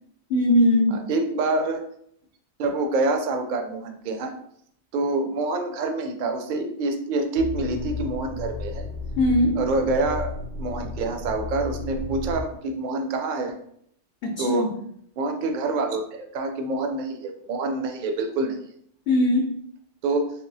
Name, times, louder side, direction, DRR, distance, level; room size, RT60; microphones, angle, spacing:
voice 1, 0.3-1.0 9.2-9.6 14.2-14.7 19.1-19.5, left 1 dB, 65° left, 0 dB, 0.8 m, -20 dB
voice 2, 0.9-1.9 2.6-4.3 4.9-8.8 9.6-10.3 10.6-13.6 14.4-14.7 15.2-18.6 20.0-20.3, right 2 dB, 55° right, 5 dB, 0.6 m, -26 dB
sound 1, 7.4-12.4, left 3 dB, 80° right, 0.9 m, -33 dB
3.5 x 3.0 x 2.6 m, 0.68 s
omnidirectional pair, 1.1 m